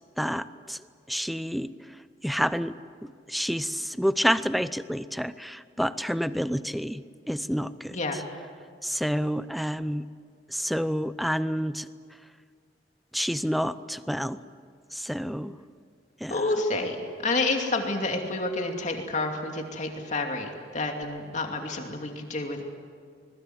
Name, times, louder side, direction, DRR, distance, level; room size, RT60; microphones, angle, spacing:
voice 1, 0.2-2.0 2.2-8.2 8.8-10.1 10.5-11.9 13.1-14.4 14.9-15.6 16.2-16.5, equal, ahead, 14 dB, 0.6 m, -29 dB
voice 2, 16.3-17.0 17.2-22.6, left 2 dB, 45° left, 3 dB, 2.6 m, -29 dB
26.0 x 21.5 x 7.9 m, 2.1 s
head